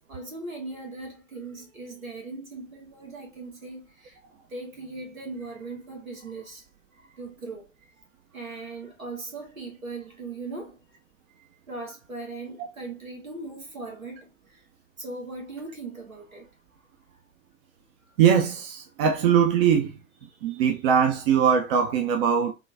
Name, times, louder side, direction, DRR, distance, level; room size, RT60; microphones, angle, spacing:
voice 1, 0.0-4.2 4.5-6.7 6.9-11.0 11.4-14.7 15.0-16.5 17.1-17.2 20.3-20.6, right 3 dB, 85° right, 1.6 m, -39 dB
voice 2, 18.2-19.9 20.4-22.5, right 7 dB, 45° right, 0.7 m, -21 dB
3.8 x 2.3 x 3.3 m
figure-of-eight pair, 95°, 40 cm